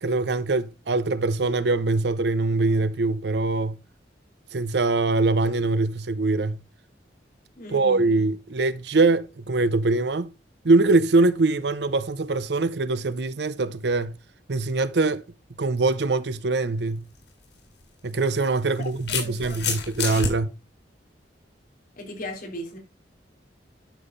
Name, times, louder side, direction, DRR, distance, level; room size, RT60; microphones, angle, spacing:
voice 1, 0.0-3.8 4.5-6.6 7.7-10.3 10.6-14.2 14.5-15.2 15.6-17.1 18.0-20.5, right 3 dB, 65° right, 0.7 m, -23 dB
voice 2, 7.6-8.2 18.8-19.8 22.0-22.8, left 1 dB, 50° left, 3.6 m, -38 dB
sound 1, 17.1-17.3 18.4-20.3, left 5 dB, 90° left, 4.1 m, -28 dB
11.5 x 5.8 x 3.9 m
head